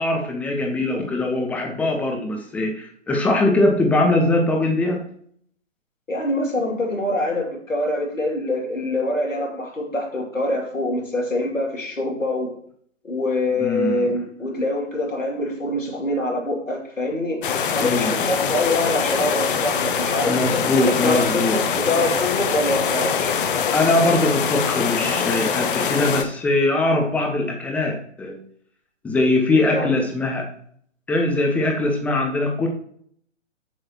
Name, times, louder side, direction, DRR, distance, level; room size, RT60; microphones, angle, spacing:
voice 1, 0.0-5.0 13.6-14.1 17.8-18.2 20.3-21.6 23.7-28.4 29.0-30.5 31.1-32.7, left 2 dB, 5° left, 2 dB, 0.6 m, -21 dB
voice 2, 6.1-12.6 13.0-23.3 29.7-30.0, left 1 dB, 85° left, -1 dB, 2.7 m, -25 dB
sound 1, 17.4-26.2, left 6 dB, 45° left, 0.9 m, -23 dB
7.9 x 6.3 x 2.9 m, 0.62 s
figure-of-eight pair, 125°, 38 cm